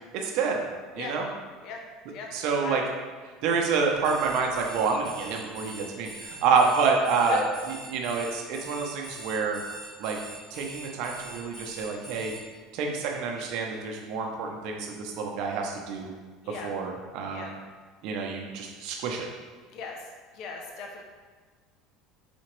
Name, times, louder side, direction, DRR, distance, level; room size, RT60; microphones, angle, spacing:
voice 1, 0.1-0.6 0.9-1.3 2.3-2.9 3.4-7.4 7.9-9.6 10.0-10.2 10.5-12.3 12.7-16.1 16.5-17.6 18.0-19.3, right 5 dB, 65° right, 1 dB, 0.6 m, -28 dB
voice 2, 2.1-2.8 7.3-7.4 16.4-16.7 17.3-17.5 19.7-20.0 20.3-21.0, left 5 dB, 55° left, 1 dB, 0.5 m, -38 dB
Alarm, 4.0-12.4, right 1 dB, 20° left, 1.5 m, -43 dB
4.2 x 2.9 x 3.0 m, 1.4 s
supercardioid pair, 125°, 0 cm